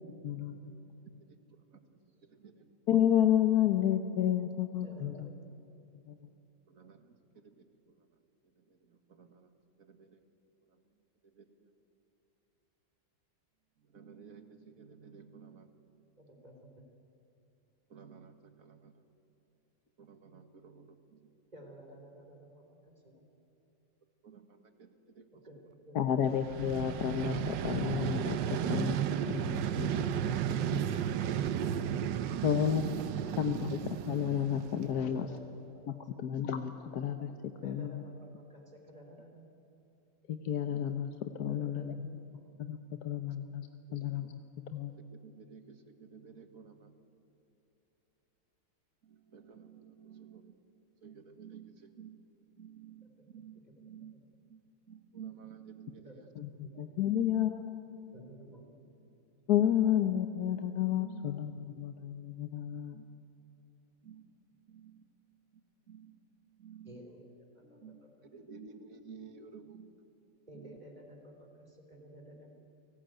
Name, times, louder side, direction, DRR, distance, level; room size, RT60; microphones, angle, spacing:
voice 1, 0.2-0.6 2.9-5.3 6.1-6.3 25.9-29.0 29.3-30.2 30.7-30.8 32.4-33.0 33.4-33.8 34.1-35.3 35.9-37.3 37.6-38.0 40.3-42.1 42.6-44.4 44.7-44.9 56.4-56.5 56.8-57.8 59.5-63.0, left 9 dB, 65° left, 8 dB, 1.4 m, -31 dB
voice 2, 4.8-5.4 16.2-16.9 21.5-23.2 25.4-26.0 33.1-33.3 33.6-33.7 34.9-36.0 37.6-39.5 41.5-42.4 53.0-53.1 53.7-54.1 56.0-57.1 58.1-58.9 66.8-68.4 70.5-72.5, equal, 25° right, 2 dB, 3.7 m, -53 dB
voice 3, 6.7-7.0 7.4-7.5 9.1-9.5 9.8-10.1 11.4-11.5 13.9-15.7 17.9-18.3 18.6-18.9 20.0-21.2 24.2-24.9 25.2-25.3 45.1-46.9 49.1-50.5 51.0-51.7 52.0-52.2 52.6-53.1 53.3-54.1 54.5-54.6 54.9-56.2 57.1-57.4 61.0-61.2 62.9-63.0 64.0-64.2 64.7-65.0 65.9-66.2 66.6-66.9 67.6-69.9, right 7 dB, 50° right, 8 dB, 2.0 m, -52 dB
Vehicle, 26.3-35.3, right 9 dB, 90° right, 1.5 m, -34 dB
29.5 x 19.0 x 9.0 m, 3.0 s
omnidirectional pair, 1.9 m